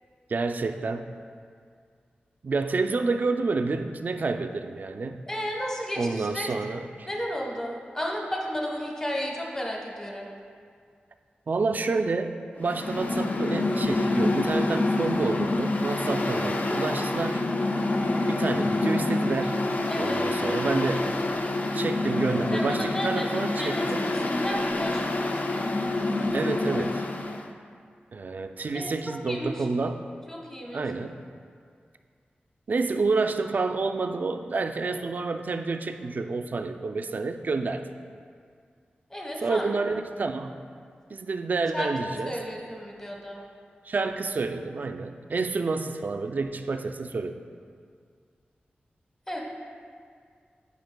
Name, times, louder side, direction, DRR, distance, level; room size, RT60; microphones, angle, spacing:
voice 1, 0.3-1.1 2.4-5.2 6.0-7.1 11.5-17.4 18.3-19.7 20.0-21.2 21.7-24.1 26.3-27.0 28.1-30.1 30.7-31.2 32.7-37.9 39.4-40.6 41.1-42.4 43.9-47.4, right 3 dB, 55° right, 7 dB, 0.3 m, -29 dB
voice 2, 5.3-6.5 7.1-10.3 19.9-20.2 22.5-23.3 23.6-25.8 28.7-29.7 30.3-30.8 39.1-39.7 41.7-41.9 42.2-43.4 49.3-49.4, equal, 15° left, -1 dB, 1.0 m, -33 dB
Mechanical fan, 12.6-27.4, left 2 dB, 50° left, 0.4 m, -27 dB
10.5 x 5.1 x 2.2 m, 2.1 s
wide cardioid pair, 75°, 3 cm